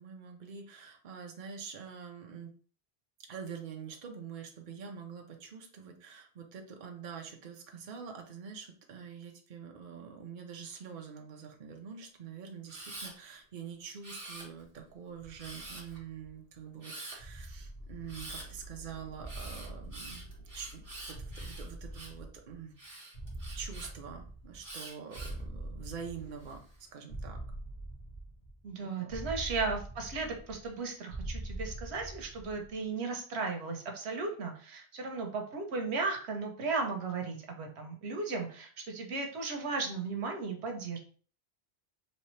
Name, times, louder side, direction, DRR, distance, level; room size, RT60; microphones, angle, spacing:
voice 1, 0.0-2.5 3.3-20.3 20.5-22.7 23.5-26.6 26.9-27.4 29.0-29.2, right 6 dB, 55° right, 2 dB, 0.8 m, -45 dB
Camera, 12.7-13.1 14.0-14.8 15.4-16.0 16.8-17.2 18.1-18.5 19.2-22.2 22.8-23.9 24.6-25.4 26.0-26.5, right 2 dB, 35° right, 1.3 m, -46 dB
sound 1, 15.2-16.5 17.2-18.7 19.2-20.8 21.1-22.7 23.1-24.8 25.1-26.8 27.1-28.7 29.1-30.8 31.1-32.7, right 1 dB, 65° left, 1.8 m, -44 dB
sound 2, 17.8-22.7, equal, 15° left, 1.1 m, -51 dB
voice 2, 28.6-41.0, right 4 dB, 90° right, 3 dB, 1.1 m, -35 dB
4.2 x 2.8 x 3.1 m, 0.42 s
omnidirectional pair, 1.1 m